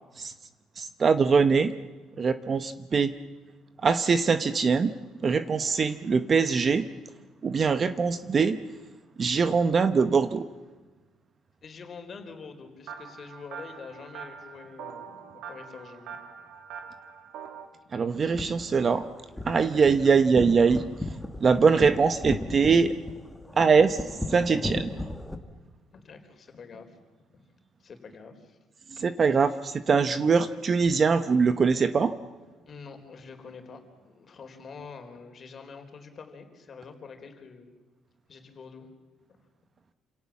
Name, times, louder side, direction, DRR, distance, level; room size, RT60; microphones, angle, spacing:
voice 1, 0.8-1.7 2.2-3.1 3.8-4.9 5.2-6.9 7.4-8.6 9.2-10.4 17.9-19.1 19.5-20.8 21.4-22.9 23.6-24.0 24.3-24.9 29.0-32.1, right 5 dB, 25° right, 11 dB, 0.9 m, -22 dB
voice 2, 11.6-16.2 25.9-27.0 27.3-27.4 27.8-28.6 29.4-29.5 32.6-37.7 38.3-38.9 39.3-39.4, left 5 dB, 30° left, 6 dB, 4.1 m, -46 dB
sound 1, 12.9-17.7, right 7 dB, 70° right, 2.5 m, -43 dB
sound 2, 18.1-25.3, left 1 dB, 5° left, 1.6 m, -36 dB
28.5 x 27.5 x 7.3 m, 1.3 s
cardioid pair, 170°, 0 cm